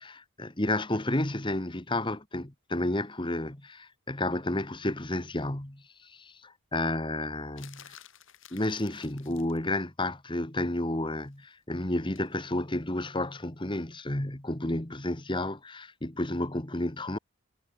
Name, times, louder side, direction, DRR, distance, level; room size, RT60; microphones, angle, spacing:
voice 1, 0.0-7.9 8.5-17.2, left 1 dB, 20° left, 1.5 m, -31 dB
sound 1, 7.6-9.6 12.2-12.3, left 10 dB, 60° left, 6.3 m, -52 dB
head